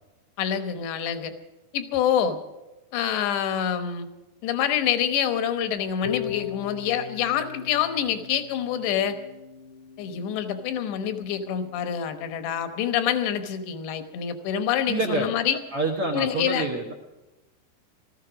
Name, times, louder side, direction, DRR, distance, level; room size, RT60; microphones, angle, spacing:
voice 1, 0.4-1.3 1.7-2.4 2.9-4.1 4.4-9.2 10.0-15.6 16.1-16.7, left 9 dB, 85° left, 8 dB, 3.3 m, -26 dB
Harp, 6.0-12.1, left 9 dB, 45° left, 0.3 m, -39 dB
voice 2, 14.9-15.3 15.7-16.9, right 3 dB, 70° right, 3 dB, 1.3 m, -27 dB
18.5 x 14.0 x 5.1 m, 1.1 s
omnidirectional pair, 4.9 m